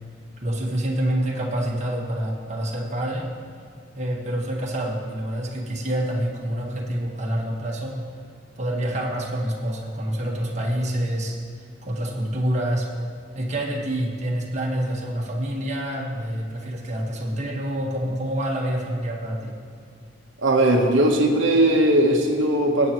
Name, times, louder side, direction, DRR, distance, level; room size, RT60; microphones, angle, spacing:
voice 1, 0.4-3.3 3.9-7.9 8.6-11.4 11.8-12.9 13.3-19.5, right 1 dB, 40° right, -3 dB, 1.6 m, -27 dB
voice 2, 20.4-22.9, right 1 dB, 85° right, 1 dB, 1.2 m, -19 dB
21.0 x 8.3 x 3.1 m, 2.4 s
head